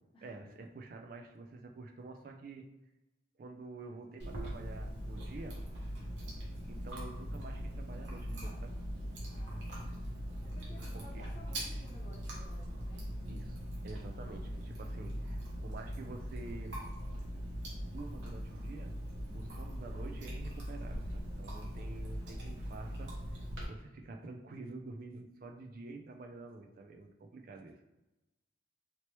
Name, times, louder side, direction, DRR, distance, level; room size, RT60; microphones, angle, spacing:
voice 1, 0.2-2.7 3.4-5.6 6.7-8.7 10.9-11.2 13.3-16.8 17.9-18.9 19.3-23.1 23.7-27.8, right 3 dB, 50° right, 4 dB, 0.3 m, -48 dB
Chewing mastication, 4.2-23.6, equal, 75° right, 1.0 m, -41 dB
voice 2, 9.3-10.1 10.4-13.1 19.2-19.7, equal, 30° left, -4 dB, 0.9 m, -57 dB
2.9 x 2.9 x 3.0 m, 1.0 s
head